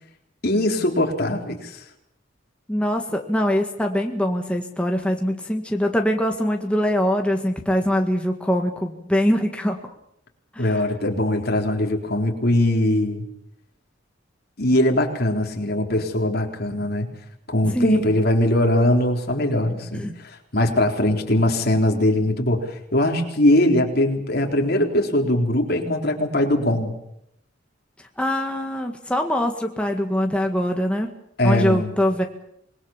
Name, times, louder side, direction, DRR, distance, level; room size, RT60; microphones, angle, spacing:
voice 1, 0.4-1.8 10.6-13.2 14.6-17.1 17.5-26.9 31.4-31.9, left 1 dB, 55° left, 3 dB, 3.9 m, -21 dB
voice 2, 2.7-9.8 10.5-10.6 17.7-18.1 19.9-20.1 28.2-31.1 31.4-32.2, equal, 5° left, 3 dB, 1.8 m, -23 dB
26.5 x 21.0 x 7.3 m, 0.76 s
head